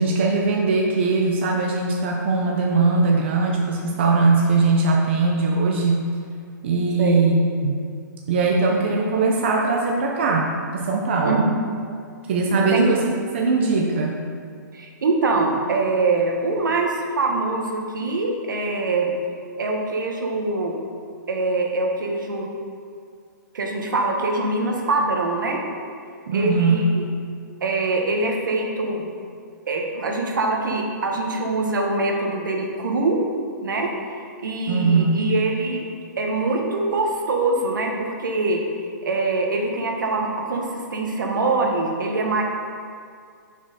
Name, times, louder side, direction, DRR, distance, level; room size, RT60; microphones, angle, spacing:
voice 1, 0.0-6.0 6.6-7.8 8.3-11.5 12.3-14.2 26.3-26.8 34.7-35.2, right 3 dB, 35° right, -1 dB, 0.6 m, -20 dB
voice 2, 11.2-11.7 12.5-12.9 14.7-19.1 19.6-20.8 21.3-22.5 23.5-25.6 26.3-27.0 27.6-29.1 29.7-33.2 33.6-33.9 34.4-35.8 36.2-38.6 39.0-42.4, right 3 dB, 75° right, 1 dB, 1.3 m, -23 dB
6.5 x 5.9 x 4.2 m, 2.2 s
hypercardioid pair, 175°, 11 cm